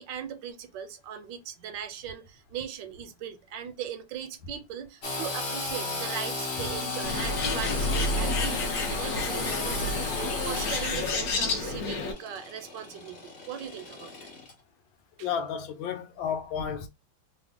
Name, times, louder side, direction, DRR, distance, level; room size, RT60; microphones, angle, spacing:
voice 1, 0.0-14.1 15.2-15.3, right 8 dB, 80° right, 1.2 m, -39 dB
Engine / Sawing, 5.0-14.5, left 3 dB, 45° left, 0.9 m, -35 dB
Bird, 7.0-12.1, left 2 dB, 60° left, 1.1 m, -30 dB
voice 2, 15.2-16.9, left 7 dB, 85° left, 1.4 m, -32 dB
3.4 x 2.1 x 3.4 m
omnidirectional pair, 2.1 m